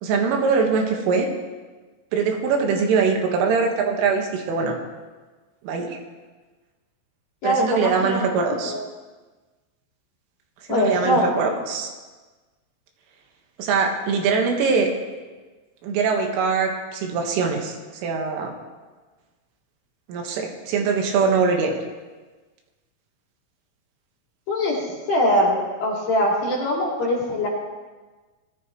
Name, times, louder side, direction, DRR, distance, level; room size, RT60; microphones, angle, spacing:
voice 1, 0.0-1.3 2.1-4.8 5.6-6.0 7.4-8.7 10.7-11.9 13.6-14.9 15.8-17.8 18.0-18.5 20.1-21.8, right 5 dB, 80° right, 2 dB, 4.0 m, -22 dB
voice 2, 7.4-8.2 8.5-8.8 10.7-11.5 24.5-24.8 25.1-27.5, equal, 55° left, -3 dB, 3.8 m, -22 dB
20.0 x 14.0 x 3.1 m, 1.3 s
omnidirectional pair, 5.8 m